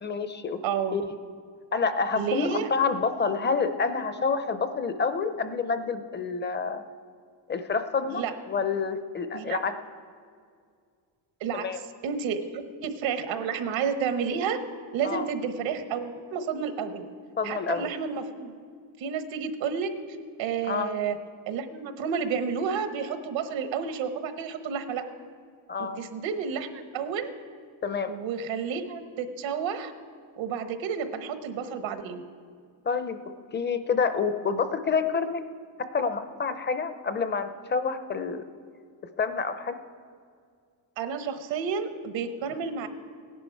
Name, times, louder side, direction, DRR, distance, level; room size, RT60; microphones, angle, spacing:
voice 1, 0.0-0.6 0.9-1.0 1.7-6.8 7.5-9.7 11.5-11.8 15.0-15.3 17.4-17.9 20.7-20.9 25.7-26.0 27.8-28.1 32.9-33.2 33.5-35.4 35.9-38.4 39.2-39.8, left 5 dB, 25° left, 10 dB, 0.6 m, -28 dB
voice 2, 0.6-1.0 2.1-2.7 8.1-8.3 9.3-9.6 11.4-14.6 14.9-17.0 17.4-18.5 19.0-19.9 20.4-21.2 21.5-25.0 25.8-27.3 28.1-29.9 30.4-32.2 41.0-42.9, right 6 dB, 80° right, 9 dB, 1.2 m, -31 dB
17.0 x 10.5 x 4.6 m, 2.1 s
cardioid pair, 140°, 45 cm